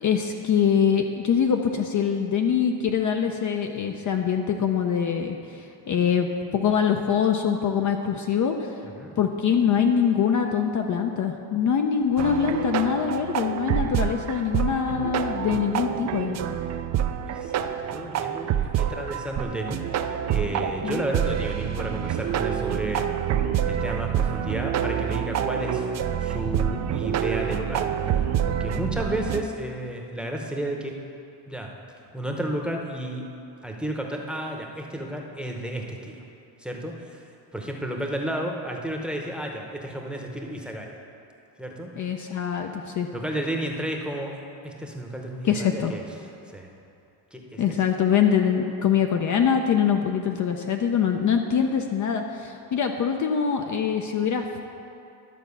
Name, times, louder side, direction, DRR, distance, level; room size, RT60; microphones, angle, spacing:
voice 1, 0.0-6.3 6.5-8.7 9.2-16.4 20.8-21.0 42.0-43.1 45.4-45.9 47.6-54.6, left 7 dB, 45° left, 4 dB, 0.6 m, -24 dB
sound 1, 12.2-29.4, right 9 dB, 40° right, 0.4 m, -27 dB
voice 2, 17.2-18.5 18.7-23.1 23.6-25.8 26.2-27.9 28.4-30.9 31.5-31.7 32.1-33.2 33.6-36.1 36.6-37.2 37.5-40.9 41.6-41.9 42.3-42.5 43.1-44.4 44.6-46.0 46.5-46.7 47.3-47.7, right 1 dB, ahead, 1 dB, 0.9 m, -32 dB
12.0 x 4.5 x 7.0 m, 2.6 s
cardioid pair, 115°, 45 cm